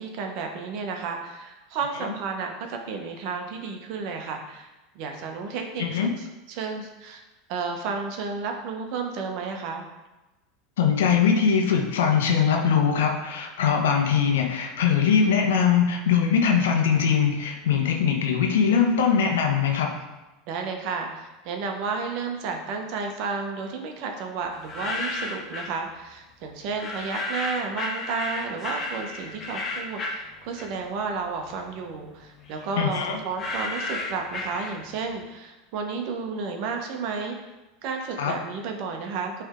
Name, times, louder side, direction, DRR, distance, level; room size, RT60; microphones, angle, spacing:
voice 1, 0.0-4.7 4.9-7.2 7.5-9.8 20.5-37.4 37.8-39.4, right 4 dB, 60° right, 3 dB, 1.1 m, -32 dB
voice 2, 5.8-6.1 10.8-19.9 32.8-33.2 38.2-38.3, left 7 dB, 75° left, 2 dB, 1.0 m, -21 dB
sound 1, 24.5-25.8 26.8-31.0 31.4-35.1, left 2 dB, 35° left, 1.3 m, -33 dB
9.2 x 3.5 x 3.7 m, 1.1 s
hypercardioid pair, 85°, 0 cm